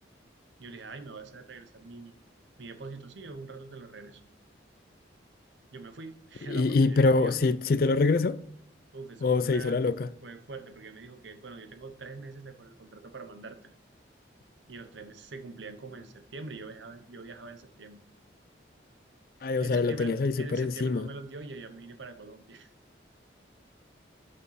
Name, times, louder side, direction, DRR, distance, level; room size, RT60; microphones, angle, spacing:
voice 1, 0.6-2.1 2.6-4.2 5.7-7.5 8.9-9.8 10.2-13.7 14.7-18.0 19.6-22.7, right 3 dB, 80° right, 0.9 m, -44 dB
voice 2, 6.5-8.4 9.2-10.1 19.4-21.1, left 3 dB, 50° left, 0.4 m, -25 dB
6.9 x 5.3 x 6.4 m
head